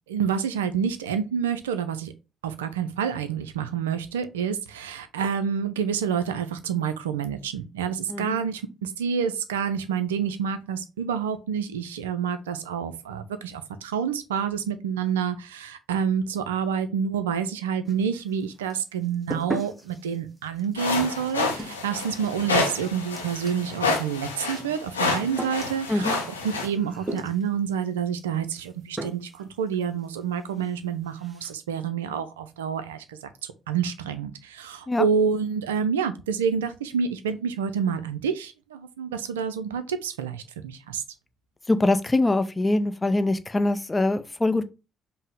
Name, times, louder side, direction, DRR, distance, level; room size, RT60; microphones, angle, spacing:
voice 1, 0.1-2.1 2.4-26.2 26.4-33.3 33.7-41.0, right 7 dB, 75° right, 0.3 m, -28 dB
voice 2, 8.1-8.4 25.9-26.2 34.9-35.0 41.7-44.6, left 2 dB, 20° left, 0.5 m, -23 dB
sound 1, 17.8-18.4 18.7-27.6 28.5-28.7 29.0-29.5 29.7-29.8 30.2-30.3 30.6-30.8 31.1-31.5, right 1 dB, 15° right, 1.0 m, -38 dB
sound 2, 20.8-26.7, left 3 dB, 85° left, 0.5 m, -28 dB
5.4 x 2.0 x 3.6 m
figure-of-eight pair, 40°, 0 cm